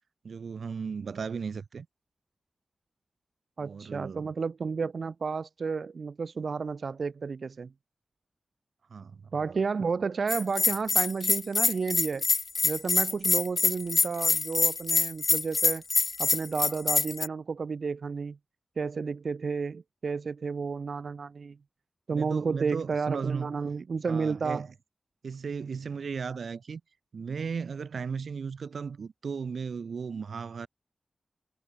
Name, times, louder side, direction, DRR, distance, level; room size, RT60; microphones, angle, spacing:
voice 1, 0.2-1.9 3.6-4.3 8.9-9.6 22.1-23.6 24.1-24.7 25.2-26.8 27.1-30.7, right 5 dB, 90° right, 4.6 m, -36 dB
voice 2, 3.6-7.7 9.3-12.3 12.6-15.8 16.2-18.4 18.8-21.6 22.1-24.7, right 5 dB, 70° right, 3.6 m, -31 dB
Bell, 10.3-17.3, left 3 dB, 45° left, 2.2 m, -25 dB
wide cardioid pair, 110°, 0 cm